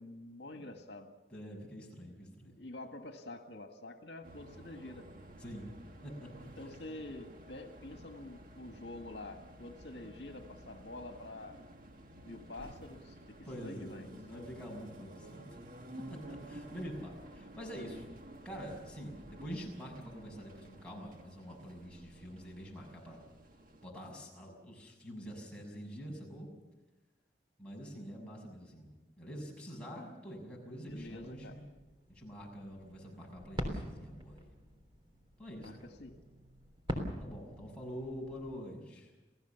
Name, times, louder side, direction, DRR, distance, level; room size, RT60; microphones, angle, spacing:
voice 1, 0.0-1.1 2.5-5.1 6.6-11.6 12.2-14.1 30.8-31.5 35.6-36.1, left 2 dB, 75° left, 5 dB, 1.8 m, -47 dB
voice 2, 1.3-2.6 5.4-5.7 6.0-6.7 13.4-15.6 16.0-18.1 18.4-23.2 23.8-26.5 27.6-28.9 29.2-31.6 32.1-34.5 35.4-35.9 37.1-39.1, equal, 5° left, -3 dB, 6.5 m, -46 dB
sound 1, 4.2-23.9, right 1 dB, 50° right, 1.7 m, -53 dB
sound 2, 30.9-38.6, equal, 25° right, 3.5 m, -44 dB
29.0 x 17.0 x 7.1 m, 1.1 s
head